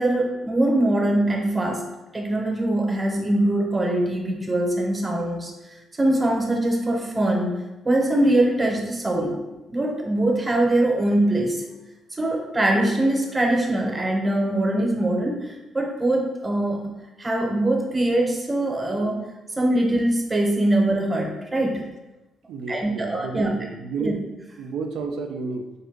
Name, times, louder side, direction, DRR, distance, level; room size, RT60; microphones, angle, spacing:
voice 1, 0.0-1.8 2.1-5.5 5.9-9.4 9.7-11.6 12.2-16.9 17.2-19.2 19.6-21.8 22.7-23.5 24.0-24.1, right 1 dB, 20° right, 1 dB, 0.8 m, -22 dB
voice 2, 22.5-24.2 24.6-25.7, right 4 dB, 85° right, 4 dB, 0.3 m, -31 dB
3.7 x 2.6 x 3.5 m, 1.0 s
cardioid pair, 90°, 0 cm